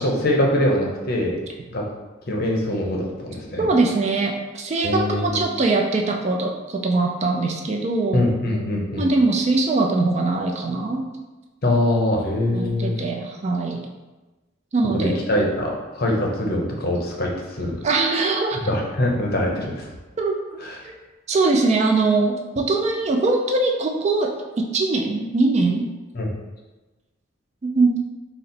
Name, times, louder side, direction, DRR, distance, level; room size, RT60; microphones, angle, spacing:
voice 1, 0.0-1.4 1.7-1.8 2.2-3.7 4.8-5.4 8.1-9.1 11.6-12.9 14.9-17.7 18.5-19.9 20.6-20.9 26.1-26.3, left 1 dB, 45° left, -1 dB, 0.6 m, -23 dB
voice 2, 3.6-8.2 9.0-11.0 12.5-13.8 14.7-15.2 17.8-18.7 20.2-20.9 21.3-24.3 24.6-25.9 27.6-28.0, right 3 dB, 35° right, 1 dB, 0.3 m, -22 dB
4.2 x 2.0 x 3.8 m, 1.2 s
head